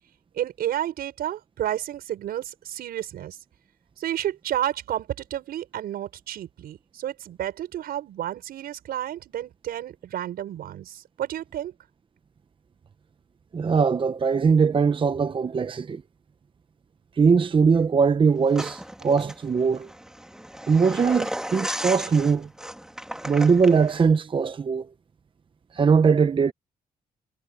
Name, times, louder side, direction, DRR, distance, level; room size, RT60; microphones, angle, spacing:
voice 1, 0.4-3.4 4.0-11.7, right 11 dB, 85° right, 5.7 m, -31 dB
voice 2, 13.5-16.0 17.2-19.9 20.7-22.5 23.3-24.9 25.7-26.5, right 5 dB, 35° right, 0.8 m, -21 dB
sound 1, 18.5-24.1, equal, 5° right, 2.1 m, -35 dB
cardioid pair, 95°, 15 cm